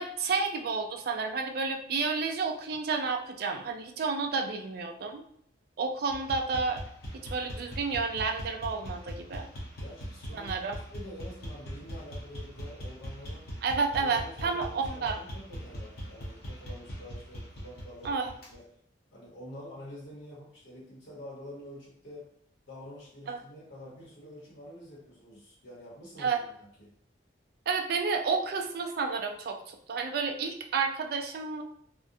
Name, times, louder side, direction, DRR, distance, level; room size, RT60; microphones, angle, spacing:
voice 1, 0.0-5.2 5.8-6.8 7.1-9.5 10.3-10.7 13.6-15.2 18.0-18.3 23.3-23.4 26.2-26.4 27.7-31.6, right 4 dB, 55° right, 4 dB, 0.3 m, -31 dB
sound 1, 6.1-18.5, equal, 55° left, 0.6 m, -41 dB
voice 2, 9.8-13.5 14.0-18.6 19.1-22.3 22.7-26.9, equal, 85° left, -5 dB, 0.9 m, -47 dB
2.4 x 2.1 x 2.6 m, 0.68 s
head